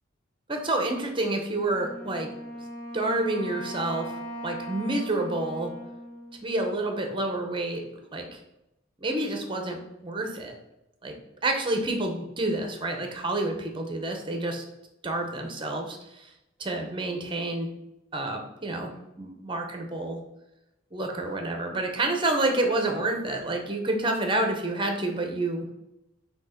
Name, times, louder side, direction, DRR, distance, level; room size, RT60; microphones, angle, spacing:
voice 1, 0.5-2.3 2.9-4.2 4.4-5.7 6.4-7.9 8.1-8.4 9.0-10.5 11.0-11.2 11.4-14.6 15.0-16.3 16.6-17.7 18.1-20.2 20.9-25.7, right 2 dB, 25° right, 3 dB, 0.9 m, -29 dB
Wind instrument woodwind instrument, 1.7-7.2, equal, 35° left, 2.2 m, -39 dB
6.2 x 2.9 x 5.7 m, 0.90 s
head